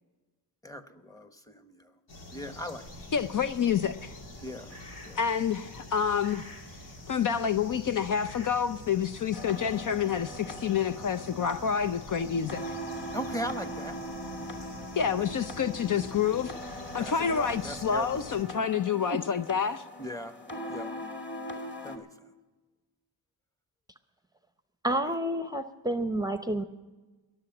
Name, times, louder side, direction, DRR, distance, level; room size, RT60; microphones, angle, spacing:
voice 1, 0.6-1.9 2.3-2.8 4.4-4.7 5.0-5.2 13.1-13.9 17.0-18.6 19.1-19.2 20.0-20.3 20.7-20.9 21.8-22.1, equal, 10° left, 1.1 m, -38 dB
sound 1, 2.1-18.4, equal, 85° left, 2.6 m, -46 dB
voice 2, 3.1-4.2 5.2-6.5 7.1-12.6 15.0-16.5 16.9-19.8, left 7 dB, 50° left, 0.6 m, -28 dB
sound 2, 9.3-22.0, equal, 25° left, 2.3 m, -41 dB
voice 3, 24.8-26.6, right 1 dB, 10° right, 0.7 m, -29 dB
21.5 x 7.7 x 6.0 m
cardioid pair, 80°, 41 cm